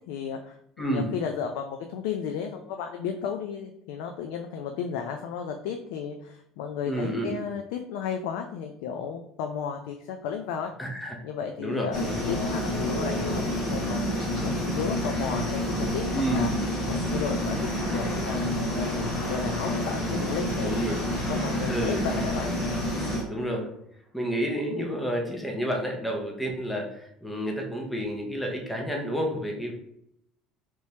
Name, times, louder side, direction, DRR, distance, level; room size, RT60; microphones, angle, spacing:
voice 1, 0.1-10.7 11.2-14.0 14.4-16.5 16.9-17.6 17.9-20.8 21.3-22.5, left 7 dB, 85° left, 4 dB, 0.3 m, -34 dB
voice 2, 0.8-1.1 6.9-7.3 10.8-11.2 11.6-12.2 16.1-16.6 20.6-21.0 21.7-22.0 23.3-23.8 24.1-29.7, equal, 5° left, 1 dB, 0.5 m, -30 dB
sound 1, 11.9-23.2, equal, 30° left, 1.0 m, -28 dB
3.3 x 3.0 x 2.7 m, 0.74 s
cardioid pair, 175°, 0 cm